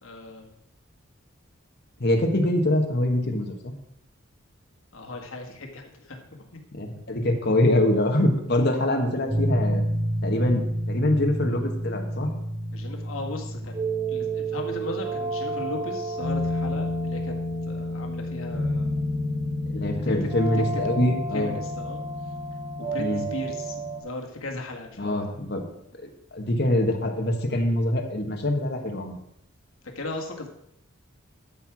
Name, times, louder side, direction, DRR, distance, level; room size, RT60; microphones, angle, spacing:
voice 1, 0.0-0.5 4.9-6.6 12.7-13.8 14.1-17.3 17.7-19.0 20.2-20.8 21.3-22.0 22.8-25.4 30.0-30.5, left 2 dB, 85° left, 1 dB, 1.9 m, -37 dB
voice 2, 2.0-3.7 6.8-9.9 10.2-12.3 19.7-21.5 23.0-23.2 25.0-25.7 26.3-29.2, left 1 dB, 50° left, 3 dB, 1.5 m, -24 dB
sound 1, 9.3-24.0, equal, 30° right, 2.8 m, -29 dB
12.5 x 4.7 x 6.1 m, 0.76 s
head